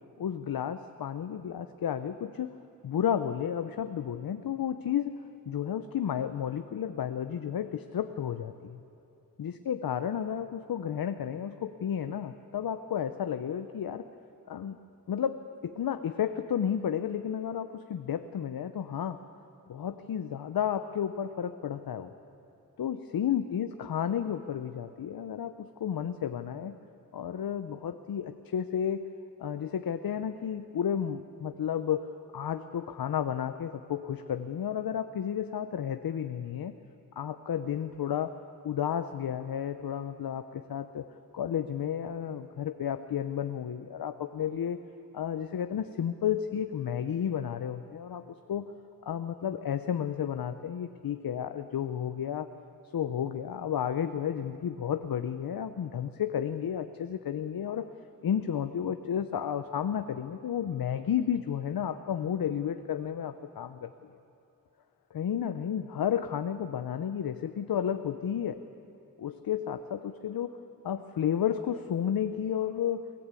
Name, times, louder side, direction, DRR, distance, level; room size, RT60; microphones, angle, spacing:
voice 1, 0.2-2.5 2.8-5.2 5.5-8.8 9.4-14.1 14.5-14.8 15.1-19.2 19.7-22.1 22.8-26.8 27.1-29.0 29.4-32.1 32.3-36.8 37.2-38.3 38.6-41.0 41.3-44.8 45.1-48.2 48.5-48.7 49.0-52.5 52.9-57.9 58.2-63.9 65.1-68.6 69.2-70.5 70.8-73.0, left 9 dB, 80° left, 9 dB, 0.7 m, -32 dB
22.5 x 17.5 x 8.3 m, 2.7 s
wide cardioid pair, 140°, 35 cm